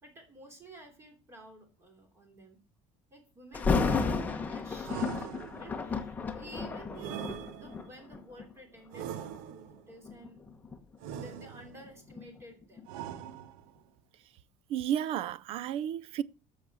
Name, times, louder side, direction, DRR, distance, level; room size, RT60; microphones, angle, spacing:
voice 1, 0.0-2.6 3.1-10.4 11.1-12.8, right 1 dB, 20° right, 3.0 m, -52 dB
Thunder, 3.5-8.5 9.2-9.4 10.0-12.9 13.2-13.3, left 4 dB, 10° left, 1.0 m, -33 dB
sound 1, 4.8-5.9 7.0-8.0 8.9-9.9 11.0-11.9 12.9-13.8, right 10 dB, 80° right, 0.9 m, -42 dB
voice 2, 14.7-16.2, right 10 dB, 45° right, 0.5 m, -32 dB
11.0 x 6.6 x 6.1 m
cardioid pair, 175°, 13 cm